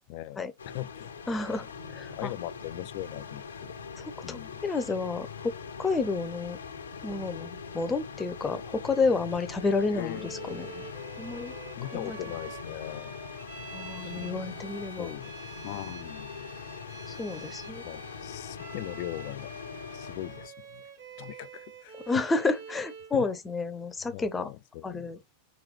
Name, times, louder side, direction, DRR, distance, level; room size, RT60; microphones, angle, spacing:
voice 1, 0.1-1.1 2.1-3.7 4.2-4.6 9.9-11.1 11.8-13.2 14.0-14.7 15.0-15.3 15.6-16.3 17.8-19.5 19.9-20.8 21.2-22.1 23.1-23.3 24.1-25.2, left 15 dB, 45° left, 0.3 m, -40 dB
sound 1, 0.6-20.5, left 5 dB, 70° left, 0.7 m, -42 dB
voice 2, 1.3-1.7 1.9-2.3 4.0-5.5 5.8-6.6 7.0-10.7 11.2-11.5 11.9-12.2 13.7-15.1 17.1-17.8 22.1-24.5 24.8-25.2, left 3 dB, 15° left, 0.7 m, -30 dB
Bowed string instrument, 10.0-23.2, right 5 dB, 55° right, 1.4 m, -47 dB
5.2 x 3.0 x 3.1 m
figure-of-eight pair, 90°, 0 cm